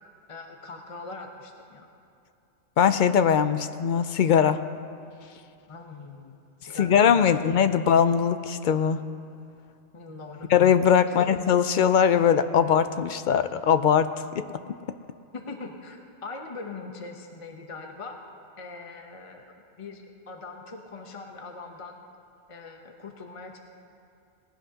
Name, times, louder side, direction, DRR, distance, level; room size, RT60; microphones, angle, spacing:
voice 1, 0.3-1.9 5.7-7.3 9.9-10.5 11.0-11.2 15.3-18.2 18.6-19.4 19.8-22.0 22.5-23.6, left 3 dB, 30° left, 3 dB, 0.9 m, -41 dB
voice 2, 2.8-4.6 6.8-9.0 10.5-14.1 14.3-14.4, left 8 dB, 60° left, 11 dB, 0.5 m, -21 dB
19.5 x 16.0 x 2.8 m, 2.5 s
omnidirectional pair, 1.2 m